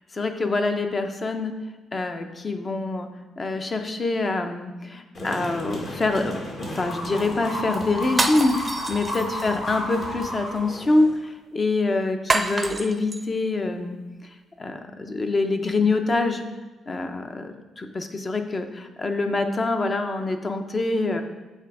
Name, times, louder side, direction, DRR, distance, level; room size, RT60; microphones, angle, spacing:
voice 1, 0.1-1.5 1.9-3.1 3.4-14.0 14.6-16.4 16.9-21.2, left 3 dB, 30° left, 6 dB, 0.7 m, -25 dB
sound 1, 5.1-11.2, left 1 dB, 55° left, 1.9 m, -32 dB
sound 2, 8.1-9.6 12.3-13.2, right 2 dB, 20° right, 0.6 m, -26 dB
8.2 x 3.5 x 4.8 m, 1.2 s
cardioid pair, 90°, 0 cm